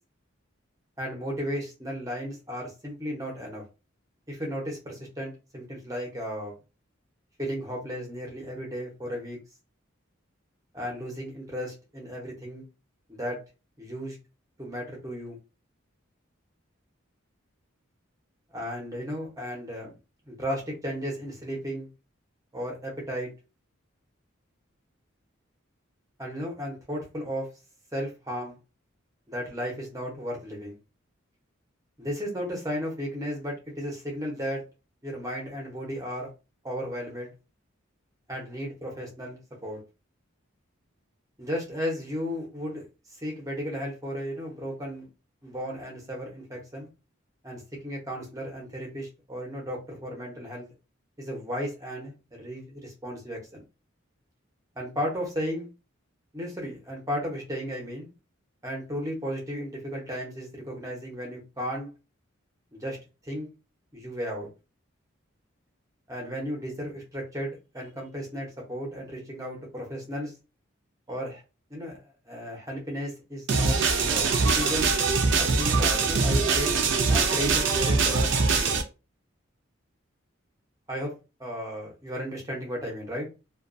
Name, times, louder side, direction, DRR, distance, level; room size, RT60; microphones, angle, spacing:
voice 1, 1.0-3.6 4.3-6.5 7.4-9.4 10.7-12.6 13.1-13.4 13.8-14.2 14.6-15.4 18.5-20.0 20.3-21.9 22.5-23.3 26.2-27.5 27.9-28.6 29.3-30.8 32.0-34.6 35.0-36.3 36.6-37.3 38.3-39.8 41.4-45.1 45.4-46.9 47.4-50.7 51.2-53.6 54.8-55.7 56.3-58.1 58.6-61.9 62.7-63.0 63.2-63.5 63.9-64.5 66.1-70.3 71.1-71.4 71.7-74.3 74.5-74.9 75.4-76.7 77.1-78.8 80.9-81.1 81.4-83.3, equal, 15° right, 0.7 m, -34 dB
sound 1, 73.5-78.8, right 4 dB, 60° right, 0.4 m, -23 dB
2.3 x 2.2 x 2.5 m
head